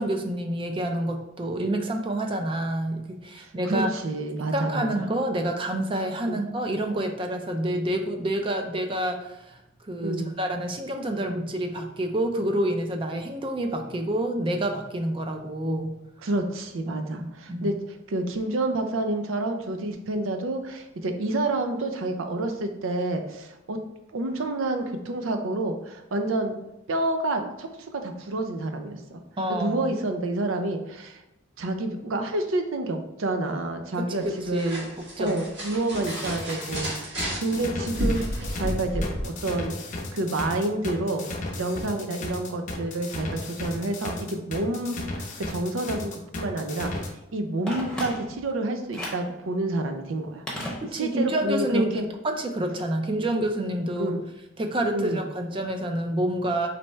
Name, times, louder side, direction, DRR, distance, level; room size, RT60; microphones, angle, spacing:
voice 1, 0.0-3.9 4.5-9.6 9.8-15.9 16.9-17.7 29.4-29.9 34.0-35.3 50.9-54.1 54.6-56.7, right 1 dB, 25° right, 5 dB, 0.4 m, -28 dB
voice 2, 3.4-5.1 6.3-6.4 10.0-10.3 16.2-23.8 24.1-26.6 26.9-29.2 29.5-31.2 31.6-34.9 35.2-38.3 38.5-41.3 41.6-46.9 47.3-52.1 54.0-54.2 54.9-55.2, right 2 dB, 85° right, 6 dB, 0.5 m, -29 dB
sound 1, 34.1-39.2, equal, 60° right, 1.3 m, -32 dB
sound 2, 35.9-47.1, left 2 dB, 40° left, 0.6 m, -35 dB
Telephone, 47.7-48.5 48.9-49.3 50.5-51.3 51.6-51.7, left 1 dB, 5° left, 0.8 m, -35 dB
4.1 x 3.1 x 3.3 m, 0.88 s
head